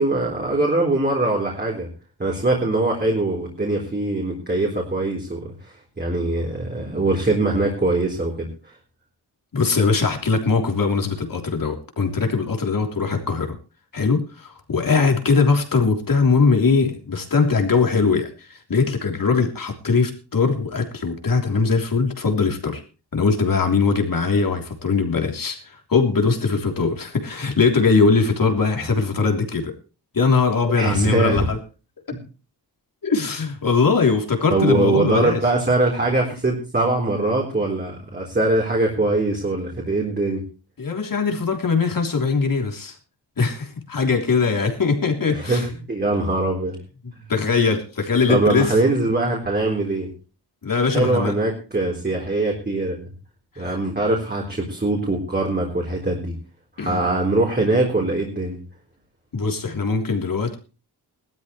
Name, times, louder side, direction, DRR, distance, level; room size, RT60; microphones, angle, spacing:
voice 1, 0.0-1.9 2.2-8.7 30.8-31.4 34.5-40.4 45.3-46.8 48.3-50.1 50.9-53.1 53.6-56.4 56.8-58.6, right 2 dB, 25° right, -2 dB, 3.9 m, -22 dB
voice 2, 9.5-13.6 13.9-22.8 23.1-29.7 30.1-31.6 32.1-32.2 33.0-35.4 40.8-42.9 43.4-45.6 47.3-48.7 50.6-51.3 53.5-53.8 56.8-57.0 59.3-60.6, left 4 dB, 55° left, 3 dB, 3.4 m, -21 dB
20.0 x 13.0 x 3.2 m, 0.34 s
wide cardioid pair, 160°, 40 cm